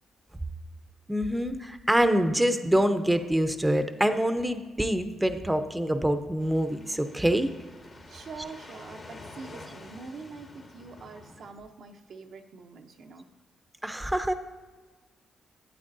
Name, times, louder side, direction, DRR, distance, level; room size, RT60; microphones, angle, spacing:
voice 1, 1.1-7.5 13.8-14.3, equal, 10° right, 8 dB, 0.7 m, -25 dB
sound 1, 6.4-11.5, left 2 dB, 50° left, 1.6 m, -48 dB
voice 2, 8.1-13.3, right 4 dB, 70° right, 4 dB, 0.7 m, -44 dB
12.0 x 8.3 x 2.6 m, 1.3 s
supercardioid pair, 60°, 0 cm